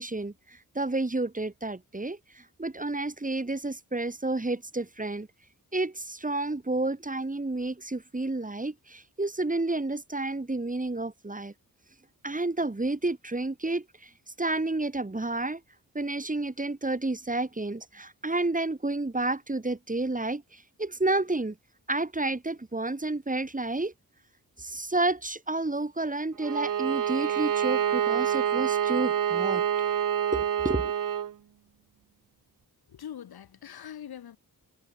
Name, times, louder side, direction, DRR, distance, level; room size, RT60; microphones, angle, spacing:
voice 1, 0.0-5.3 5.7-11.5 12.2-14.1 14.4-15.6 15.9-21.6 21.9-23.9 24.6-29.6 30.3-30.9, right 2 dB, 20° right, 2.0 m, -30 dB
Bowed string instrument, 26.4-31.3, right 9 dB, 60° right, 0.8 m, -27 dB
voice 2, 32.9-34.4, left 9 dB, 90° left, 1.8 m, -42 dB
cardioid pair, 55°, 37 cm